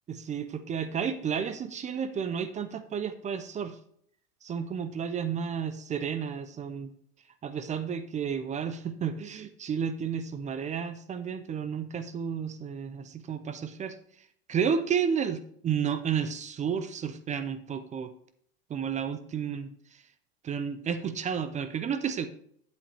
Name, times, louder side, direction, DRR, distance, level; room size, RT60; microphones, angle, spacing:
voice 1, 0.1-3.8 4.4-6.9 7.4-14.0 14.5-18.1 18.7-19.7 20.4-22.3, right 7 dB, 15° right, 11 dB, 0.4 m, -32 dB
8.4 x 7.7 x 3.3 m, 0.63 s
hypercardioid pair, 105°, 48 cm